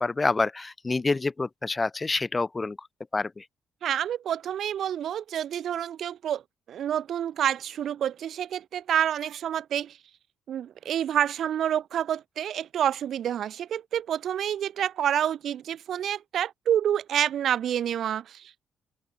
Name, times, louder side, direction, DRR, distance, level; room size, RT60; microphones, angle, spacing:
voice 1, 0.0-2.8 3.1-3.4, left 3 dB, 30° left, 0.6 m, -27 dB
voice 2, 3.8-6.4 6.7-10.0 10.5-18.7, right 10 dB, 65° right, 1.7 m, -28 dB
open air
supercardioid pair, 55°, 0 cm